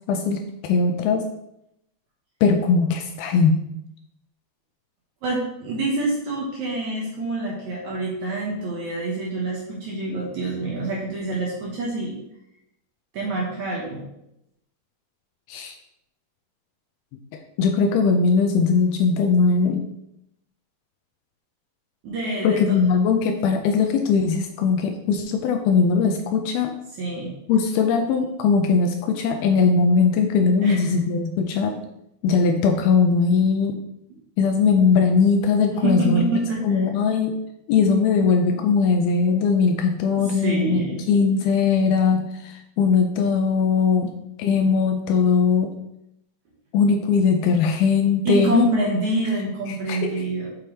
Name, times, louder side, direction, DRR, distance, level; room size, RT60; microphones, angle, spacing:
voice 1, 0.1-1.2 2.4-3.6 15.5-15.8 17.6-19.8 22.4-26.7 27.5-31.8 32.2-33.8 34.4-36.2 36.6-37.3 37.7-40.8 41.1-45.8 46.7-48.7 49.7-50.1, left 5 dB, 80° left, 4 dB, 2.3 m, -20 dB
voice 2, 5.2-12.2 13.1-14.1 22.0-22.8 27.0-27.3 30.6-30.9 35.8-36.6 38.5-38.6 40.2-41.0 48.3-50.5, right 2 dB, 60° right, -4 dB, 2.1 m, -26 dB
6.9 x 5.7 x 3.2 m, 0.81 s
omnidirectional pair, 4.7 m